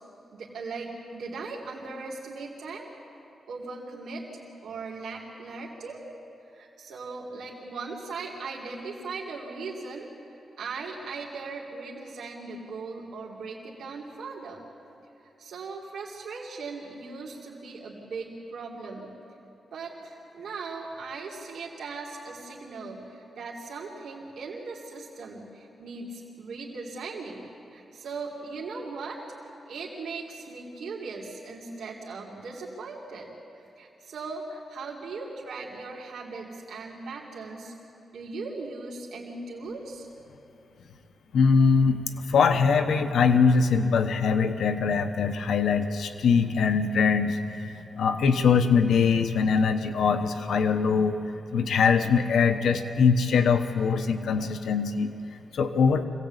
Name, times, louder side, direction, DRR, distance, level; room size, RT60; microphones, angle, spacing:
voice 1, 0.3-2.9 3.5-4.2 4.6-6.0 6.5-10.1 10.6-14.6 15.4-19.1 19.7-27.4 27.7-29.2 29.7-33.3 33.8-37.7 38.1-40.1, right 4 dB, 85° right, -3 dB, 2.6 m, -38 dB
voice 2, 41.3-42.0 42.3-51.2 51.5-55.1 55.5-56.0, left 5 dB, 80° left, 7 dB, 1.0 m, -22 dB
25.5 x 17.5 x 8.2 m, 3.0 s
wide cardioid pair, 165°, 0 cm